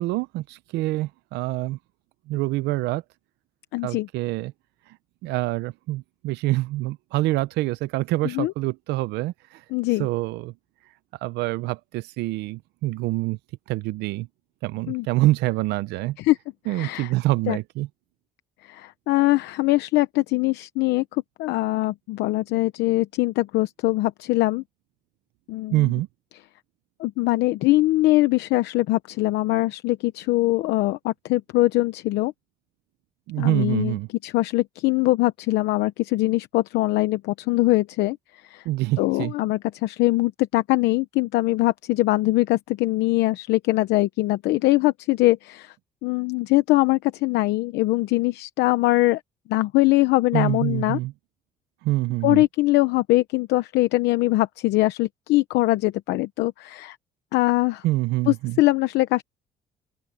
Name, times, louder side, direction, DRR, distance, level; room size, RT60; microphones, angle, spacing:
voice 1, 0.0-1.8 2.3-3.0 3.8-4.5 5.2-9.6 10.0-10.5 11.2-13.4 13.7-14.3 14.6-16.2 16.7-17.9 25.7-26.1 33.3-34.1 38.7-39.3 50.3-51.1 51.8-52.4 57.8-58.6, right 18 dB, 85° right, 0.6 m, -26 dB
voice 2, 3.7-4.1 8.2-8.5 9.7-10.1 14.9-15.1 16.2-16.4 16.7-17.1 17.5-17.6 18.6-24.6 25.5-25.9 27.0-32.3 33.4-34.0 34.2-38.2 38.5-38.6 39.0-45.7 46.0-49.2 49.5-51.0 52.2-57.0 57.3-57.8 58.3-59.2, left 19 dB, 85° left, 0.8 m, -22 dB
open air
cardioid pair, 110°, 17 cm